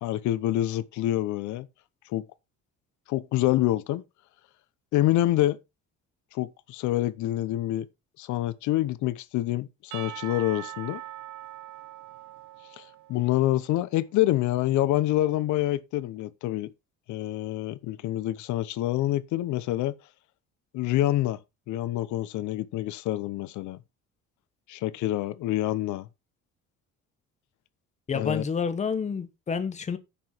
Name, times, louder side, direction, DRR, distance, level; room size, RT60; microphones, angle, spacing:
voice 1, 0.0-1.7 2.1-2.3 3.1-4.0 4.9-5.6 6.3-7.9 8.2-11.0 12.7-16.7 17.1-19.9 20.7-21.4 21.7-23.8 24.7-26.1 28.1-28.4, left 14 dB, 80° left, 0.9 m, -27 dB
Percussion / Church bell, 9.9-13.6, right 14 dB, 80° right, 1.4 m, -41 dB
voice 2, 28.1-30.0, left 6 dB, 25° left, 1.1 m, -29 dB
10.0 x 6.9 x 4.5 m
cardioid pair, 170°, 29 cm